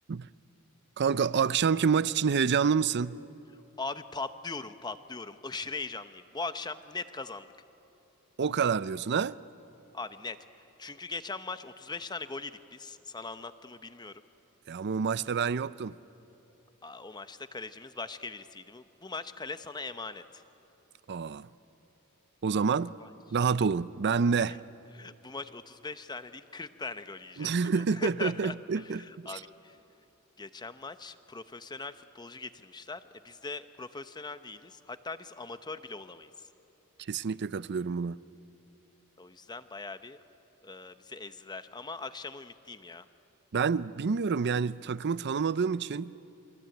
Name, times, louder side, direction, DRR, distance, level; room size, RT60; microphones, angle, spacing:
voice 1, 1.0-3.2 8.4-9.4 14.7-16.0 21.1-21.5 22.4-23.0 23.3-24.6 27.4-29.4 37.1-38.2 43.5-46.1, right 6 dB, 50° right, 0.5 m, -28 dB
voice 2, 3.8-7.5 9.9-10.4 10.8-14.2 16.8-20.4 23.0-23.1 24.4-24.6 24.9-29.8 30.4-36.5 39.2-40.2 40.6-43.1, left 3 dB, 20° left, 0.9 m, -40 dB
28.0 x 22.5 x 9.1 m
head